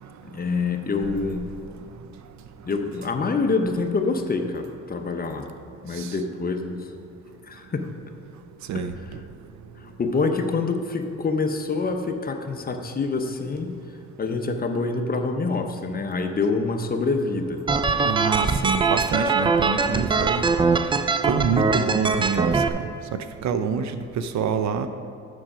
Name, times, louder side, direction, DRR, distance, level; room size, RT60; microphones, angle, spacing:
voice 1, 0.2-1.5 2.6-5.5 5.8-6.9 7.4-7.8 8.7-8.8 9.8-13.8 14.2-17.6, left 4 dB, 30° left, 5 dB, 0.7 m, -26 dB
sound 1, 17.7-22.7, right 4 dB, 15° right, 0.3 m, -22 dB
voice 2, 18.0-20.5 21.3-22.8 23.1-24.9, right 6 dB, 65° right, 9 dB, 0.6 m, -26 dB
7.4 x 6.3 x 4.9 m, 2.5 s
cardioid pair, 90°, 30 cm